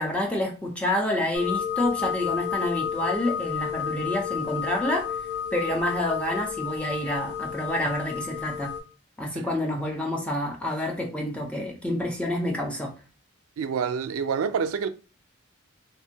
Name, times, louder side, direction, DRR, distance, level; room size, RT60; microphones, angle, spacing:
voice 1, 0.0-5.2 5.5-8.7 9.2-12.9, left 1 dB, 5° left, 0.5 m, -28 dB
sound 1, 1.3-8.8, left 8 dB, 50° left, 1.1 m, -31 dB
voice 2, 13.6-14.9, right 6 dB, 85° right, 0.4 m, -27 dB
2.7 x 2.6 x 2.7 m
head